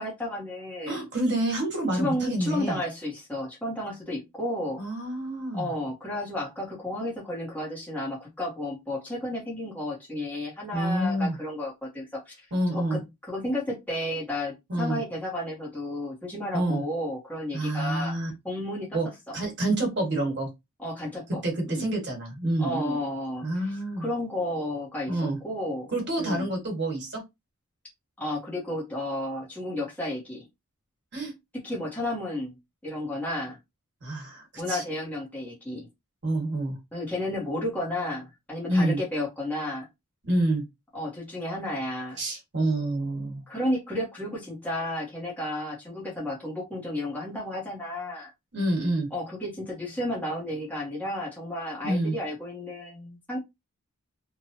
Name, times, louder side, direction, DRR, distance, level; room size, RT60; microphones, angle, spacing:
voice 1, 0.0-1.0 1.9-4.8 5.5-12.4 12.7-13.0 13.3-18.2 18.4-19.0 19.3-19.4 20.8-21.4 21.7-21.9 22.6-25.2 25.4-25.9 26.2-26.5 28.2-30.5 31.6-32.6 32.8-33.6 34.6-35.9 36.9-39.9 40.9-42.2 43.5-48.3 49.1-53.4, left 1 dB, 5° left, 0.9 m, -32 dB
voice 2, 0.9-2.8 4.8-5.7 10.7-11.3 12.5-13.0 14.7-15.0 16.5-16.8 17.5-18.3 18.9-19.1 19.3-20.5 21.4-23.0 23.4-24.1 25.1-25.4 25.9-27.2 31.1-31.3 34.0-34.8 36.2-36.8 38.7-39.0 40.3-40.6 42.2-43.4 48.5-49.1 51.8-52.1, right 1 dB, 50° right, 1.4 m, -27 dB
3.0 x 2.2 x 2.7 m
head